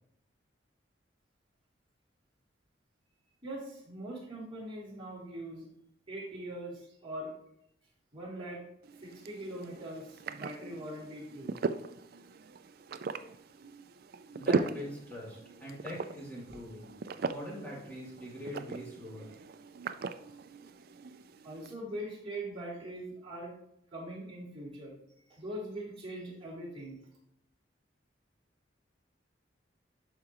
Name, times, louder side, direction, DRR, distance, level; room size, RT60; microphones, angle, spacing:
voice 1, 3.4-5.6 6.1-7.3 8.1-8.6 9.0-11.6 21.4-23.5 23.9-24.9 25.2-27.0, right 1 dB, 30° right, -6 dB, 3.0 m, -42 dB
sound 1, 8.8-21.7, right 4 dB, 55° right, 0.4 m, -39 dB
voice 2, 14.3-19.3, equal, 10° left, -7 dB, 2.8 m, -43 dB
11.5 x 4.9 x 3.0 m, 0.80 s
head